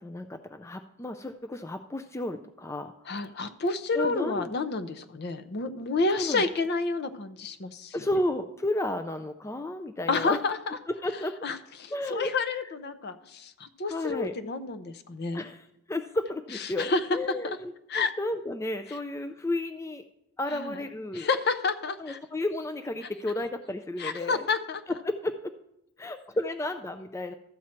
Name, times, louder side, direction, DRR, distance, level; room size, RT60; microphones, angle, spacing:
voice 1, 0.0-2.9 3.9-4.5 6.1-6.4 7.9-10.4 10.9-11.4 11.9-12.3 13.9-14.3 15.3-20.0 20.4-21.3 22.0-24.4 25.0-25.5 26.0-27.3, left 1 dB, 15° left, 8 dB, 0.3 m, -32 dB
voice 2, 3.1-8.0 10.1-10.8 11.4-15.4 16.8-17.0 17.4-17.6 17.9-18.1 20.5-20.8 21.1-22.2 24.0-24.8, left 3 dB, 50° left, 10 dB, 0.6 m, -29 dB
13.0 x 7.3 x 4.4 m, 0.84 s
head